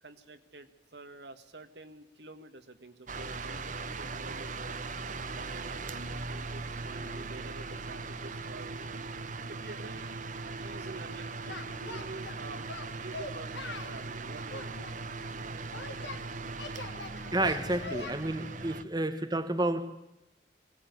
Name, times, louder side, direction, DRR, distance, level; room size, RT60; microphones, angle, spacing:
voice 1, 0.0-4.7 5.4-8.9 9.5-10.1 10.6-12.6 13.0-14.9 15.4-16.3, right 2 dB, 65° right, 8 dB, 1.8 m, -48 dB
sound 1, 3.1-18.8, right 3 dB, 45° right, 1.1 m, -39 dB
Singing, 11.5-12.4 12.7-14.0 14.5-16.2 16.6-18.1, left 3 dB, 75° left, 2.7 m, -42 dB
voice 2, 17.3-19.9, right 1 dB, 25° right, 8 dB, 1.3 m, -30 dB
22.0 x 18.5 x 9.5 m, 0.88 s
head